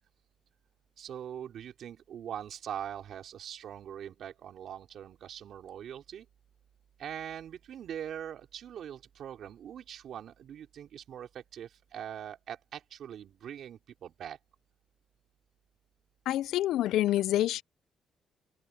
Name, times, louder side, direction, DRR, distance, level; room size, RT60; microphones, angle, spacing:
voice 1, 1.0-6.3 7.0-14.4, right 9 dB, 65° right, 3.9 m, -42 dB
voice 2, 16.3-17.6, left 13 dB, 85° left, 0.3 m, -27 dB
open air
cardioid pair, 105°, 0 cm